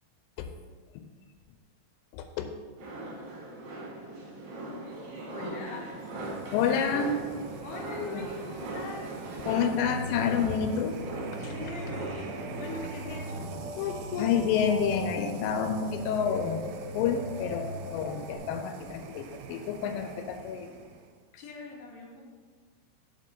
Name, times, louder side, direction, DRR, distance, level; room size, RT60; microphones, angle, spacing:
voice 1, 2.1-2.5 5.7-5.8 6.5-7.3 8.0-8.3 9.5-11.0 11.6-11.7 13.8-16.6 16.9-17.7 17.9-20.7, left 7 dB, 85° left, 7 dB, 3.0 m, -29 dB
sound 1, 2.8-12.8, right 2 dB, 55° right, 2.5 m, -39 dB
voice 2, 5.3-5.9 7.6-9.2 11.4-12.3 12.6-13.5 21.4-22.2, left 2 dB, 65° left, -1 dB, 2.4 m, -41 dB
sound 2, 5.8-21.2, right 6 dB, 90° right, 3.2 m, -44 dB
sound 3, 9.6-18.4, left 1 dB, 35° left, 1.4 m, -40 dB
7.5 x 5.5 x 5.3 m, 1.5 s
omnidirectional pair, 5.7 m